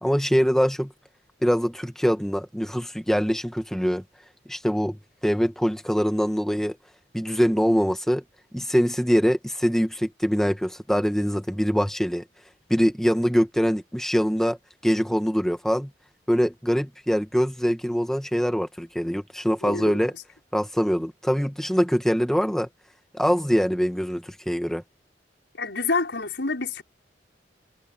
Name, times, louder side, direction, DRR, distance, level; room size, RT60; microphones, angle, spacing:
voice 1, 0.0-0.9 1.4-4.0 4.5-6.8 7.1-8.2 8.5-12.2 12.7-14.6 14.8-15.9 16.3-20.1 20.5-22.7 23.1-24.8, equal, 5° left, 1.6 m, -23 dB
voice 2, 19.6-20.0 25.6-26.8, left 3 dB, 80° left, 5.5 m, -27 dB
head